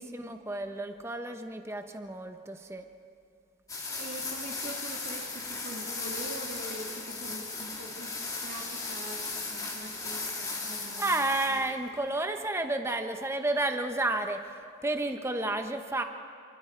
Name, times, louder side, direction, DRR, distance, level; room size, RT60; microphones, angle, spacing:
voice 1, 0.2-2.8 10.7-14.4 14.8-16.0, right 2 dB, 10° right, 6 dB, 0.9 m, -31 dB
sound 1, 3.7-11.7, left 3 dB, 15° left, 2.6 m, -37 dB
voice 2, 4.0-11.6, right 1 dB, 45° right, 2 dB, 2.2 m, -44 dB
29.0 x 25.5 x 4.6 m, 2.4 s
head